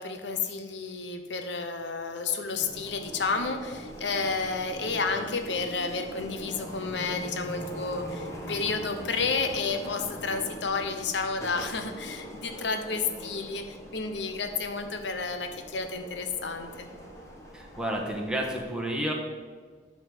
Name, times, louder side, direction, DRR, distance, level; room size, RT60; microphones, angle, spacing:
voice 1, 0.0-16.9, left 4 dB, 85° left, 6 dB, 0.9 m, -31 dB
sound 1, 2.6-18.6, equal, 15° left, 1.5 m, -42 dB
voice 2, 17.5-19.1, right 1 dB, 5° right, -1 dB, 1.3 m, -30 dB
11.0 x 3.9 x 7.1 m, 1.6 s
head